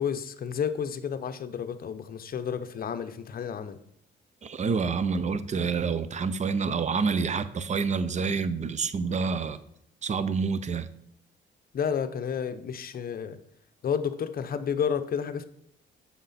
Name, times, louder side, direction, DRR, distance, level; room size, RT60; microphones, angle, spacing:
voice 1, 0.0-3.8 11.7-13.4 13.8-15.4, left 7 dB, 50° left, 0.8 m, -31 dB
voice 2, 4.4-9.6 10.0-10.9, right 5 dB, 35° right, 0.6 m, -28 dB
7.5 x 5.9 x 4.2 m
cardioid pair, 90°, 20 cm